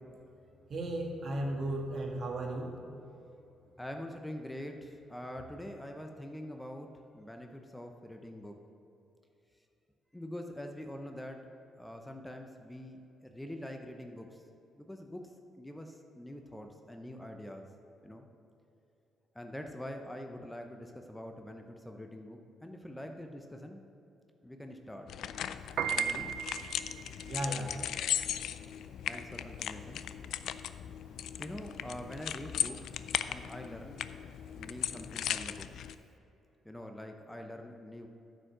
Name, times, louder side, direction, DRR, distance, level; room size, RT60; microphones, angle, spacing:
voice 1, 0.7-2.7 27.2-27.7, right 1 dB, 55° right, 1 dB, 1.6 m, -35 dB
voice 2, 3.8-6.9 7.1-8.6 10.1-11.4 11.8-14.4 14.8-17.7 18.0-18.3 19.3-23.8 24.4-25.1 25.9-26.3 29.0-30.0 31.4-32.9 33.3-34.0 34.6-35.7 36.6-38.1, left 1 dB, 10° left, 4 dB, 0.7 m, -44 dB
sound 1, 25.1-35.9, left 10 dB, 75° left, 0.3 m, -37 dB
Piano, 25.6-36.0, right 9 dB, 75° right, 0.4 m, -40 dB
9.7 x 5.3 x 6.6 m, 2.8 s
cardioid pair, 90°, 0 cm